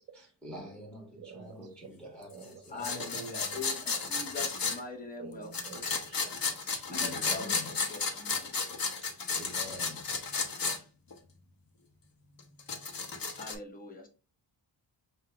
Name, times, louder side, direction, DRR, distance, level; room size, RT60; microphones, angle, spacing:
voice 1, 0.1-4.0 6.9-8.0 8.9-9.1 9.4-10.3, equal, ahead, 0 dB, 1.5 m, -46 dB
voice 2, 1.2-1.5 2.3-2.6 3.1-3.2 3.9-4.0 5.2-6.8, right 5 dB, 30° right, 6 dB, 0.7 m, -50 dB
voice 3, 2.7-3.7 4.1-5.8 6.9-7.6 7.9-8.6 13.4-14.1, left 3 dB, 20° left, 1 dB, 1.0 m, -42 dB
sound 1, 2.8-4.8 5.5-10.8 11.1-11.2 12.4-13.5, left 4 dB, 50° left, 1.0 m, -33 dB
5.6 x 2.4 x 3.3 m, 0.33 s
wide cardioid pair, 120°, 45 cm